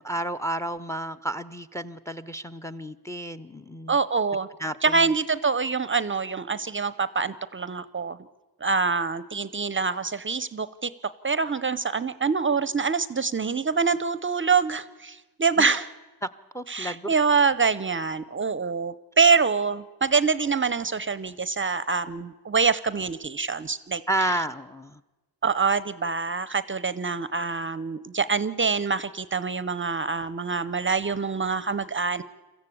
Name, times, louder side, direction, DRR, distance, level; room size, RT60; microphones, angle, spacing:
voice 1, 0.0-4.0 4.6-5.1 16.2-16.3 16.5-17.1 24.1-25.0, right 1 dB, 5° left, 15 dB, 0.6 m, -31 dB
voice 2, 3.9-4.5 4.8-8.2 8.6-10.9 11.2-15.9 16.7-24.0 25.4-32.2, right 5 dB, 30° right, 17 dB, 0.6 m, -25 dB
22.5 x 14.5 x 8.5 m, 1.2 s
wide cardioid pair, 105°, 39 cm